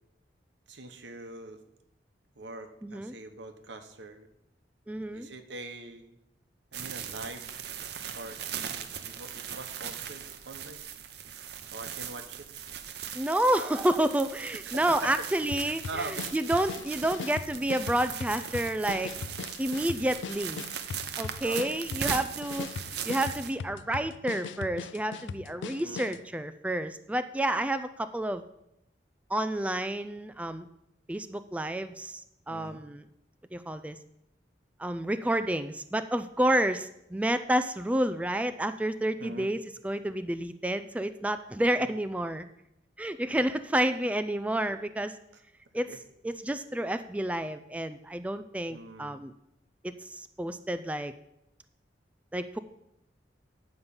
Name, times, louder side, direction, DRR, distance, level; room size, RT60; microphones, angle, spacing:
voice 1, 0.7-1.6 2.4-4.3 5.1-6.2 6.7-7.5 8.1-8.4 8.8-10.9 11.7-12.5 14.6-15.1 15.9-16.3 21.4-21.8 25.8-26.2 32.5-32.8 39.2-39.5 41.8-41.9 45.9-46.0 48.7-49.1, right 2 dB, 90° right, 7 dB, 1.2 m, -43 dB
voice 2, 2.8-3.1 4.9-5.3 13.1-16.1 16.3-19.1 19.6-20.6 21.2-22.7 23.1-28.4 29.3-30.7 31.1-32.2 32.5-33.0 33.5-34.0 34.8-42.5 43.0-45.2 45.7-45.9 46.2-49.3 49.8-51.1 52.3-52.6, right 1 dB, 10° right, 10 dB, 0.3 m, -29 dB
sound 1, 6.7-23.5, right 8 dB, 60° right, 0.7 m, -39 dB
sound 2, 15.5-26.3, left 6 dB, 85° left, 0.4 m, -40 dB
9.6 x 5.3 x 7.1 m, 0.82 s
head